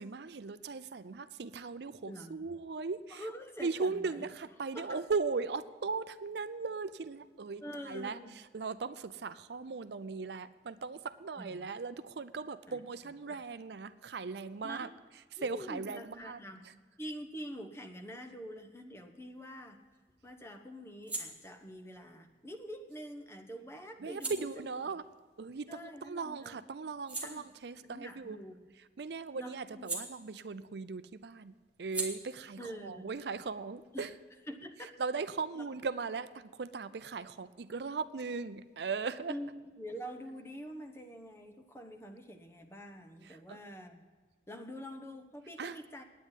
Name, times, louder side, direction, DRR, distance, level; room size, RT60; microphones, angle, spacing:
voice 1, 0.0-3.2 3.6-8.2 8.5-14.9 15.4-16.4 24.0-25.0 25.4-28.4 29.0-34.1 35.0-39.3 43.5-43.6 45.6-45.8, right 4 dB, 70° right, 13 dB, 0.5 m, -38 dB
voice 2, 2.1-2.4 3.1-4.3 4.7-5.0 7.6-8.4 11.4-11.7 12.7-13.4 14.6-14.9 15.4-16.6 17.0-19.8 20.2-24.9 25.7-26.6 27.2-27.5 27.8-28.6 29.4-29.9 32.6-33.1 33.9-34.1 34.5-34.9 35.5-35.6 39.3-44.1 44.5-46.0, equal, 15° left, 4 dB, 1.0 m, -46 dB
sound 1, 19.3-26.2 26.6-30.8 31.1-34.5, right 3 dB, 10° right, 1.8 m, -46 dB
9.5 x 9.3 x 9.0 m, 1.4 s
head